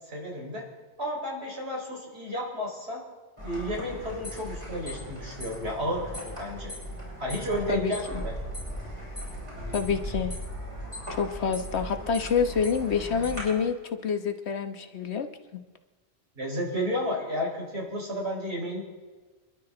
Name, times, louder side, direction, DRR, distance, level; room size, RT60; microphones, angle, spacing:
voice 1, 0.1-0.6 1.0-3.0 3.4-6.7 7.2-8.3 11.4-11.5 16.4-18.9, equal, 80° right, -2 dB, 5.2 m, -32 dB
sound 1, 3.4-13.4, equal, 30° right, 7.3 m, -38 dB
voice 2, 7.7-8.2 9.7-10.4 11.1-15.6, left 6 dB, 85° left, 7 dB, 1.4 m, -28 dB
28.0 x 12.0 x 3.9 m, 1.3 s
omnidirectional pair, 1.1 m